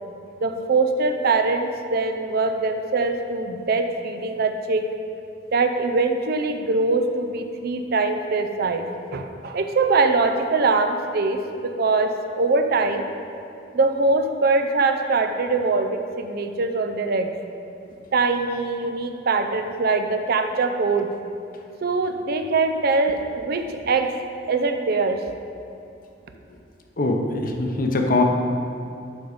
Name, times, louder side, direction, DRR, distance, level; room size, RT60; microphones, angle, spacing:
voice 1, 0.4-4.9 5.5-13.1 13.7-17.3 18.1-21.1 21.8-24.1 24.5-25.2, right 3 dB, 55° right, 6 dB, 0.5 m, -22 dB
voice 2, 27.0-28.2, left 2 dB, 50° left, 3 dB, 0.8 m, -22 dB
11.5 x 4.1 x 5.0 m, 2.5 s
head